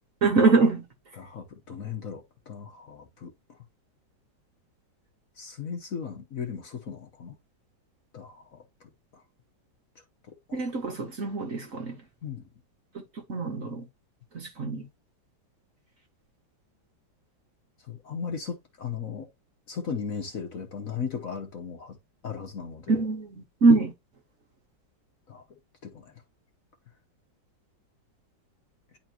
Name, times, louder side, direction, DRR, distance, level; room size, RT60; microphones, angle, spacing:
voice 1, 0.2-0.8 10.5-11.9 13.3-13.8 14.3-14.8 22.9-23.3 23.6-23.9, right 3 dB, 45° right, 1.5 m, -23 dB
voice 2, 1.2-3.3 5.4-7.4 8.1-9.2 10.3-10.6 12.2-12.5 17.9-19.3 19.7-22.0 22.2-23.0 25.3-25.4 25.8-26.1, left 6 dB, 50° left, 1.4 m, -37 dB
10.0 x 4.3 x 2.8 m
omnidirectional pair, 2.1 m